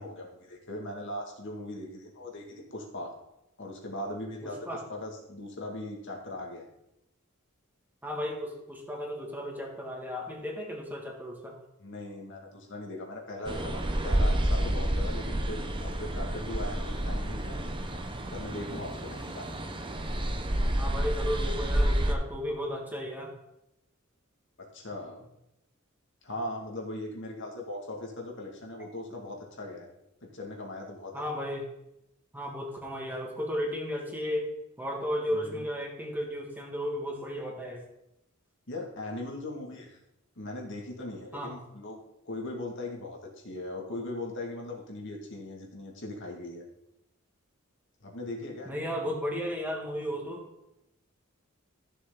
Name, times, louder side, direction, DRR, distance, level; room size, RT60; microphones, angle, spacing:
voice 1, 0.0-3.2 3.6-6.7 11.8-18.0 18.3-19.6 24.7-25.3 26.2-29.9 30.2-31.3 35.3-35.7 38.7-40.0 40.4-42.0 42.2-46.7 48.0-48.8, left 1 dB, 60° left, 0 dB, 2.1 m, -39 dB
voice 2, 8.0-11.6 20.8-23.3 28.8-28.9 31.1-31.6 32.3-34.5 34.8-37.9 41.3-41.6 48.7-50.4, equal, 10° right, -1 dB, 2.0 m, -34 dB
sound 1, 13.5-22.1, right 1 dB, 25° right, 0.9 m, -29 dB
14.0 x 7.1 x 3.9 m, 0.86 s
head